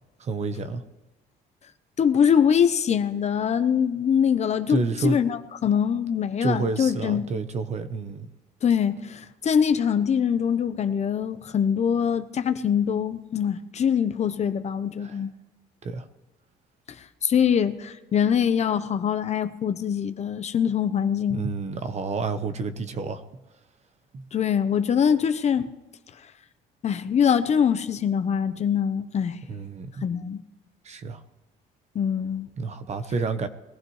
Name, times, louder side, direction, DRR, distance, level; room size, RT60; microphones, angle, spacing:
voice 1, 0.2-0.8 4.7-5.2 6.4-8.3 15.0-15.2 15.8-16.1 21.3-23.2 24.1-24.3 29.5-30.1 30.8-31.2 32.6-33.5, right 4 dB, 40° right, 1.1 m, -29 dB
voice 2, 2.0-7.3 8.6-15.3 17.2-21.5 24.3-25.7 26.8-29.4 30.0-30.4 31.9-32.5, left 8 dB, 40° left, 0.9 m, -23 dB
21.5 x 15.0 x 3.2 m
cardioid pair, 110°, 17 cm